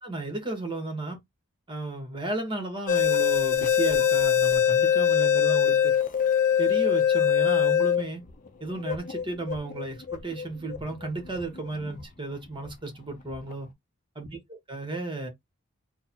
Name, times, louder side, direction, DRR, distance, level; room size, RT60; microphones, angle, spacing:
voice 1, 0.0-1.2 1.7-5.9 6.6-8.2 8.6-13.7 14.1-15.3, right 2 dB, 25° right, 1.6 m, -34 dB
sound 1, 2.9-12.1 12.6-12.7 13.3-13.5, left 8 dB, 40° left, 0.6 m, -23 dB
3.8 x 2.4 x 4.3 m
head